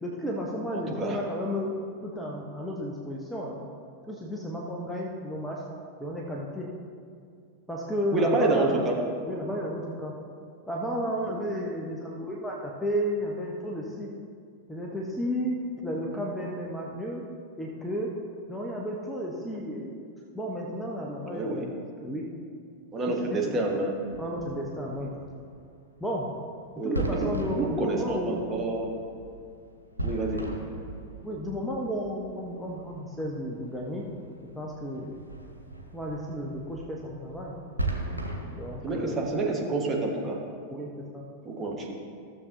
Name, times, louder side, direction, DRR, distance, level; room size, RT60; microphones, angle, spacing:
voice 1, 0.0-1.7 2.0-3.6 4.1-5.6 6.0-6.7 7.7-8.7 9.3-10.1 10.7-14.1 14.7-17.3 17.6-18.1 18.5-20.0 20.3-21.8 22.0-22.2 23.1-23.5 24.2-25.1 26.0-26.3 26.8-28.4 31.2-34.0 34.5-35.1 35.9-37.6 38.5-39.2 40.7-41.2, equal, 5° left, -2 dB, 0.9 m, -33 dB
voice 2, 0.7-1.2 8.1-9.0 11.3-11.4 21.3-21.7 22.9-23.9 24.9-25.1 26.8-28.9 30.0-30.5 38.8-40.4 41.4-41.9, right 2 dB, 20° right, -1 dB, 1.4 m, -28 dB
sound 1, 23.9-39.1, right 2 dB, 90° left, 1.0 m, -38 dB
14.5 x 7.0 x 2.7 m, 2.4 s
figure-of-eight pair, 90°, 0 cm